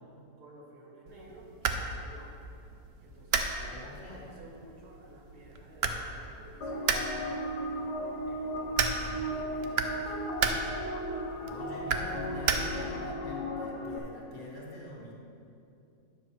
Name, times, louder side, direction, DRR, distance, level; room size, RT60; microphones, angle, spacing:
voice 1, 0.4-2.4 3.0-7.9 8.2-10.4, right 1 dB, 85° right, -4 dB, 2.6 m, -52 dB
sound 1, 1.1-13.1, right 5 dB, 65° right, 0.6 m, -35 dB
voice 2, 3.7-4.3 11.4-15.2, left 2 dB, 50° left, -4 dB, 2.0 m, -45 dB
sound 2, 6.6-14.0, equal, 80° left, 1.6 m, -36 dB
10.0 x 6.3 x 4.7 m, 2.6 s
omnidirectional pair, 1.7 m